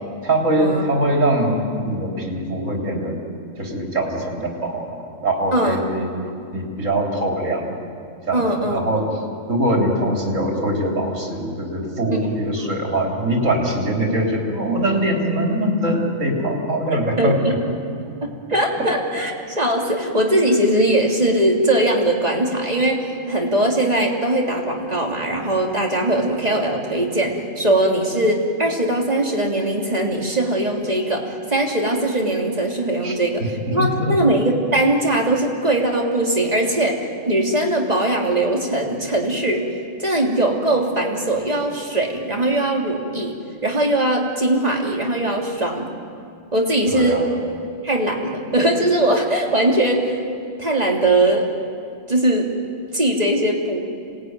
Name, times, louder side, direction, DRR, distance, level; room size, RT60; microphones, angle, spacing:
voice 1, 0.2-3.1 3.6-5.0 5.2-6.1 6.5-7.7 8.3-8.5 8.7-9.1 9.5-17.5 33.0-33.1 33.8-34.1 46.9-47.3, right 1 dB, 90° right, -1 dB, 3.9 m, -22 dB
voice 2, 8.3-9.2 16.9-17.8 18.2-39.7 40.0-43.4 43.6-45.9 46.5-47.2 47.8-50.2 50.6-51.5 52.1-52.5 52.9-53.8, right 1 dB, 30° right, -1 dB, 3.2 m, -20 dB
27.0 x 19.0 x 9.5 m, 2.4 s
omnidirectional pair, 1.3 m